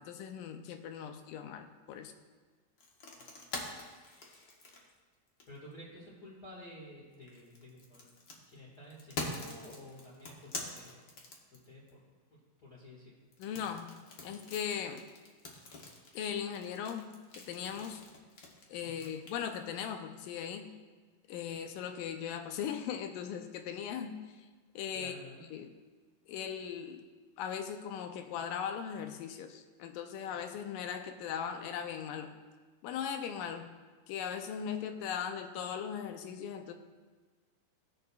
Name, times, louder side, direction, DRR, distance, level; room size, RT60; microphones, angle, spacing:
voice 1, 0.0-2.1 13.4-14.0 14.2-15.1 16.1-18.0 18.7-20.7 21.3-24.5 24.8-25.1 25.5-25.7 26.3-27.0 27.4-32.3 32.8-33.7 34.1-36.7, left 8 dB, 85° left, 7 dB, 2.3 m, -39 dB
sound 1, 2.8-5.7 7.1-11.9 13.3-19.8, left 2 dB, 65° left, 1.1 m, -45 dB
voice 2, 3.2-3.5 5.5-8.1 8.3-11.0 11.5-12.0 12.3-13.1 18.8-19.1 24.9-25.4, left 1 dB, 35° left, -7 dB, 2.0 m, -52 dB
20.0 x 6.6 x 2.4 m, 1.4 s
omnidirectional pair, 3.8 m